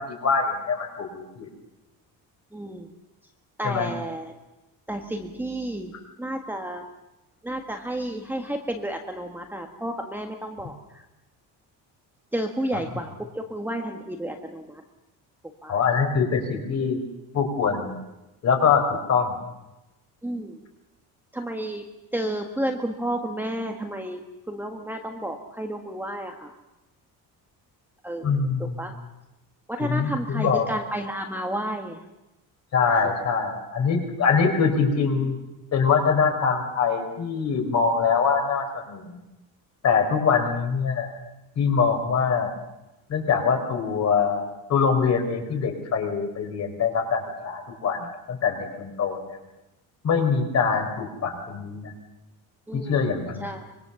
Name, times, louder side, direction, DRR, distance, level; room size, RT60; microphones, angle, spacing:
voice 1, 0.0-1.5 3.6-3.9 15.7-17.0 17.3-17.9 18.4-19.4 28.2-28.8 29.8-30.7 32.7-35.4 35.7-39.2 39.8-41.1 41.6-42.5 43.1-44.4 44.7-49.4 50.0-51.9 52.7-53.5, left 5 dB, 45° left, 4 dB, 4.7 m, -23 dB
voice 2, 2.5-2.9 3.6-4.3 4.9-5.9 6.2-6.8 7.4-11.0 12.3-14.8 15.6-15.8 20.2-20.6 21.3-21.9 22.1-24.2 24.5-26.6 28.0-29.0 29.7-32.0 52.7-53.7, right 1 dB, 5° right, 3 dB, 1.6 m, -31 dB
25.0 x 22.5 x 7.0 m, 0.97 s
cardioid pair, 170°, 37 cm